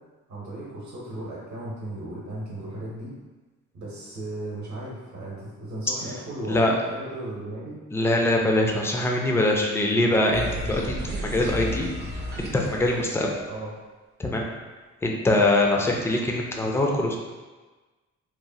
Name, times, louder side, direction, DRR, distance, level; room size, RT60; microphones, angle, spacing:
voice 1, 0.3-3.1 3.7-7.8 11.6-11.8 13.5-13.7, right 1 dB, 60° right, -6 dB, 0.9 m, -36 dB
voice 2, 7.9-11.9 12.4-13.3 14.2-14.5 15.0-17.2, left 1 dB, 10° left, 0 dB, 0.4 m, -23 dB
sound 1, 10.3-13.6, equal, 35° right, 0.6 m, -33 dB
3.1 x 2.1 x 2.6 m, 1.3 s
cardioid pair, 90°, 30 cm